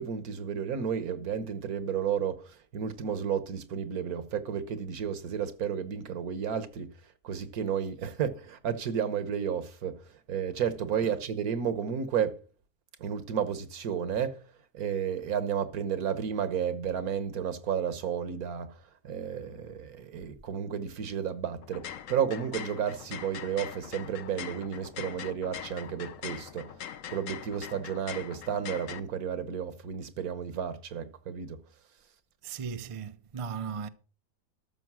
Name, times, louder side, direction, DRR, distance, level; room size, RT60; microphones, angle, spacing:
voice 1, 0.0-6.9 7.2-10.0 10.3-12.4 13.0-14.4 14.7-18.7 19.0-26.7 27.1-31.6, right 8 dB, 75° right, 1.6 m, -32 dB
sound 1, 21.6-29.0, left 9 dB, 60° left, 1.1 m, -42 dB
voice 2, 32.4-33.9, right 6 dB, 50° right, 0.4 m, -37 dB
13.0 x 6.5 x 6.2 m
omnidirectional pair, 1.6 m